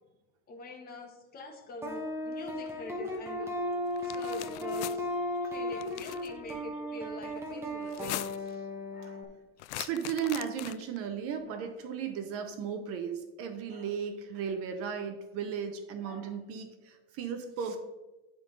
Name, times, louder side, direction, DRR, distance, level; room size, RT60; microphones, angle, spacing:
voice 1, 0.5-3.5 4.0-5.1 5.4-9.3 9.8-10.1 11.5-11.7 12.2-12.4 13.7-13.9 16.0-16.3, left 2 dB, 25° left, 3 dB, 1.4 m, -46 dB
sound 1, 1.8-9.2, left 1 dB, 5° right, 1.2 m, -35 dB
sound 2, 3.9-5.0 5.7-6.3 7.8-8.5 9.6-11.0, left 17 dB, 75° left, 0.5 m, -40 dB
voice 2, 9.8-17.8, right 7 dB, 40° right, 7 dB, 0.9 m, -35 dB
11.0 x 3.9 x 5.3 m, 1.1 s
supercardioid pair, 140°, 36 cm